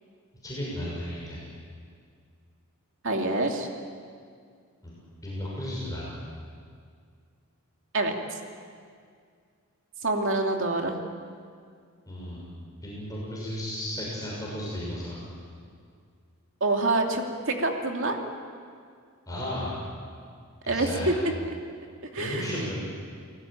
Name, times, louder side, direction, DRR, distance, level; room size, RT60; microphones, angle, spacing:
voice 1, 0.4-1.4 4.8-6.1 12.1-12.4 12.8-15.2 19.3-19.7 20.6-21.1 22.2-22.8, left 1 dB, 15° left, -6 dB, 6.4 m, -34 dB
voice 2, 3.0-3.7 7.9-8.4 10.0-10.9 16.6-18.2 20.7-21.1 22.1-22.7, right 2 dB, 60° right, 2 dB, 2.8 m, -26 dB
29.5 x 18.5 x 8.9 m, 2.2 s
head